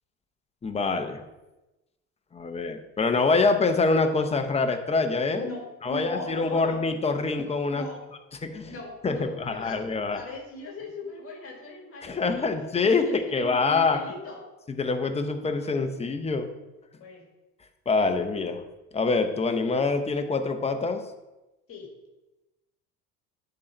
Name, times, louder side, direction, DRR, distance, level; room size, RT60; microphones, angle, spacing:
voice 1, 0.6-1.2 2.3-5.5 5.8-7.8 8.4-8.7 9.0-10.2 12.0-14.0 14.8-16.5 17.9-18.6 18.9-21.0, left 3 dB, 20° left, 6 dB, 0.8 m, -25 dB
voice 2, 5.3-6.9 7.7-8.1 8.7-9.8 10.1-14.5 17.0-17.3 21.7-21.9, left 2 dB, 45° left, -1 dB, 1.9 m, -40 dB
10.5 x 3.9 x 4.5 m, 1.0 s
cardioid pair, 115°, 32 cm